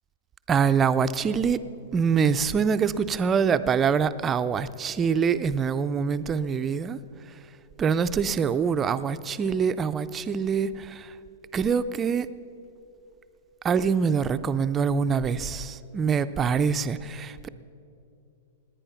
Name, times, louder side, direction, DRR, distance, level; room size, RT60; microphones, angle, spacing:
voice 1, 0.5-1.6 1.9-7.0 7.8-11.1 11.5-12.3 13.6-17.5, right 6 dB, 20° right, 12 dB, 0.4 m, -25 dB
18.0 x 10.0 x 5.8 m, 2.7 s
hypercardioid pair, 140°, 0 cm